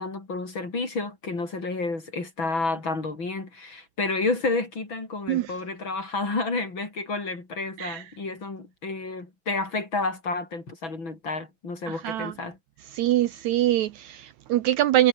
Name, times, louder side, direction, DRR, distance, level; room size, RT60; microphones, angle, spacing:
voice 1, 0.0-12.6, left 3 dB, 35° left, 5.5 m, -30 dB
voice 2, 11.9-12.3 12.9-15.1, right 13 dB, 70° right, 2.0 m, -24 dB
omnidirectional pair, 3.6 m